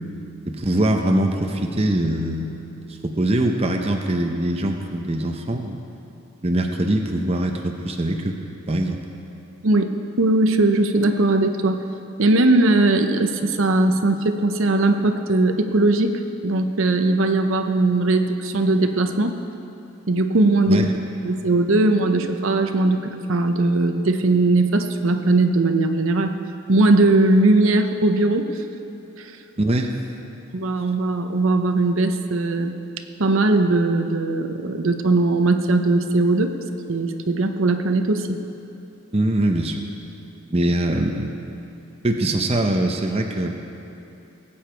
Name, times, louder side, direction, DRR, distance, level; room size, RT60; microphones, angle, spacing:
voice 1, 0.5-2.5 2.8-5.8 6.4-8.4 8.7-9.0 20.7-20.9 29.6-29.9 39.1-39.8 40.5-41.4 42.0-43.6, right 1 dB, 30° right, 3 dB, 0.7 m, -22 dB
voice 2, 10.2-11.8 12.2-16.1 16.4-19.3 20.1-20.9 21.2-26.3 26.7-28.6 29.2-29.3 30.5-32.7 33.2-36.5 36.9-38.4, right 2 dB, 70° right, 6 dB, 0.7 m, -19 dB
19.5 x 8.8 x 4.5 m, 2.8 s
head